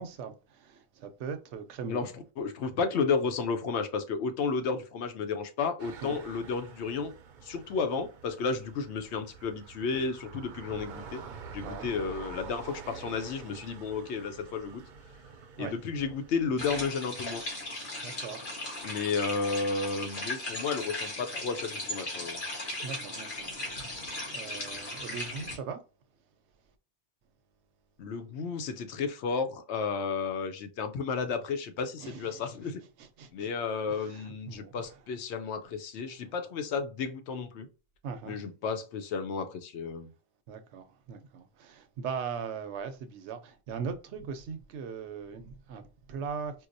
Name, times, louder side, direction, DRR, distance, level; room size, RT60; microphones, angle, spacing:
voice 1, 0.0-2.1 2.7-2.8 6.0-6.2 11.6-11.9 15.6-15.8 18.0-18.4 22.8-25.8 32.0-32.5 33.0-33.5 33.9-34.9 38.0-38.4 40.5-46.7, right 6 dB, 85° right, 0.9 m, -40 dB
voice 2, 2.4-7.1 7.4-11.2 11.5-14.8 15.6-17.4 18.8-22.4 28.0-32.8 33.3-37.7 38.3-40.1, left 5 dB, 85° left, 0.9 m, -32 dB
sound 1, 5.8-16.9, right 5 dB, 60° right, 0.6 m, -47 dB
sound 2, 16.6-25.6, left 1 dB, 50° left, 1.4 m, -37 dB
4.6 x 2.0 x 2.6 m
omnidirectional pair, 1.1 m